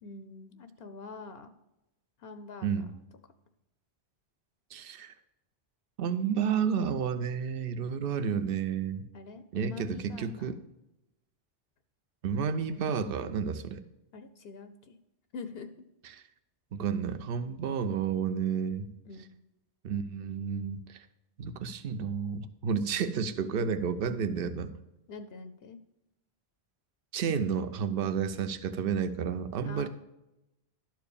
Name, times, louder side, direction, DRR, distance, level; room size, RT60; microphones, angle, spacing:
voice 1, 0.0-1.5 2.2-3.0 9.1-10.6 12.5-12.6 14.1-15.0 15.3-15.7 19.0-19.4 25.1-25.8 29.6-29.9, left 4 dB, 70° left, 9 dB, 0.9 m, -45 dB
voice 2, 4.7-5.1 6.0-9.1 9.5-10.6 12.2-13.8 16.1-16.2 16.7-18.9 19.8-21.0 21.4-24.7 27.1-29.9, right 6 dB, 60° right, 11 dB, 0.8 m, -31 dB
12.0 x 4.6 x 6.9 m, 0.91 s
omnidirectional pair, 1.1 m